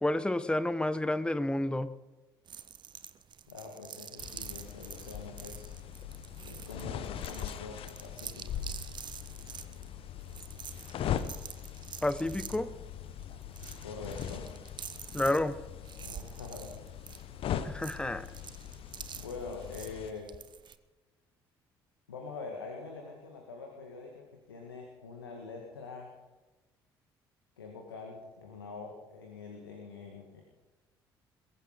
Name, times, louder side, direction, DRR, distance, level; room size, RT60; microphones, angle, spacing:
voice 1, 0.0-1.9 12.0-12.7 15.1-15.6 17.6-18.3, left 1 dB, 10° left, 15 dB, 1.0 m, -30 dB
sound 1, 2.5-20.8, right 8 dB, 40° right, 1.1 m, -48 dB
voice 2, 3.5-5.7 6.5-8.6 13.7-14.5 16.0-16.9 19.2-20.3 22.1-26.2 27.6-30.4, left 4 dB, 80° left, 2 dB, 1.9 m, -44 dB
sound 2, 4.2-20.1, left 9 dB, 50° left, 1.1 m, -41 dB
22.5 x 15.5 x 4.0 m, 1.1 s
figure-of-eight pair, 50°, 12 cm